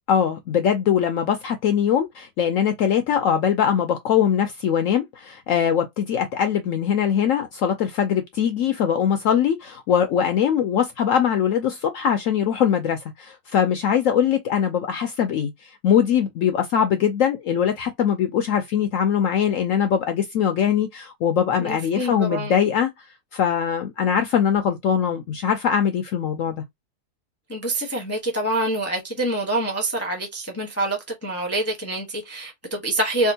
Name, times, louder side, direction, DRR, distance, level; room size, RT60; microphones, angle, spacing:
voice 1, 0.1-22.9 23.3-26.6, left 8 dB, 70° left, 0.7 m, -22 dB
voice 2, 21.6-22.6 27.5-33.3, right 1 dB, 15° left, 0.6 m, -26 dB
3.5 x 2.5 x 2.7 m
omnidirectional pair, 1.8 m